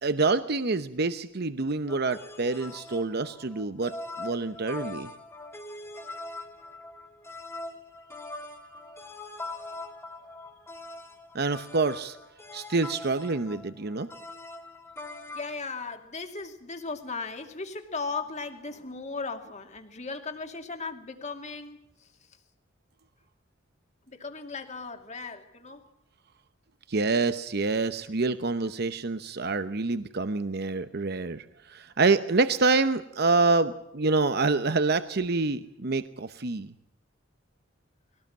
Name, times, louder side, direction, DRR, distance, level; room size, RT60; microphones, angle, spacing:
voice 1, 0.0-5.1 11.3-12.2 12.5-14.1 26.9-36.7, right 3 dB, 55° right, 11 dB, 0.9 m, -27 dB
sound 1, 1.9-15.5, left 2 dB, 15° left, 2.7 m, -42 dB
voice 2, 15.3-22.1 24.1-25.8, left 4 dB, 35° left, 5 dB, 2.6 m, -37 dB
22.0 x 18.0 x 7.5 m, 0.83 s
head